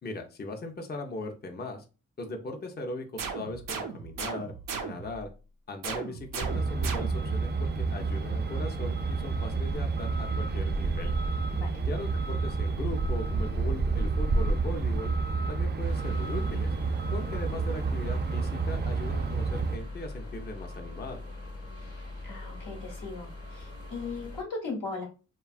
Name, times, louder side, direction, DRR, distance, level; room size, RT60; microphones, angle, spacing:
voice 1, 0.0-1.8 2.2-4.5 4.8-5.3 5.7-11.1 11.8-15.1 15.5-16.7 17.1-21.2, left 2 dB, 30° left, 4 dB, 0.6 m, -39 dB
sound 1, 3.2-5.2 5.8-7.4, right 5 dB, 80° right, 0.5 m, -37 dB
Truck, 6.4-19.8, right 4 dB, 35° right, 0.4 m, -29 dB
sound 2, 15.8-24.4, left 2 dB, 45° left, 0.9 m, -42 dB
voice 2, 22.2-25.1, left 3 dB, 85° left, -1 dB, 1.0 m, -38 dB
2.6 x 2.2 x 2.4 m, 0.33 s
cardioid pair, 45°, 32 cm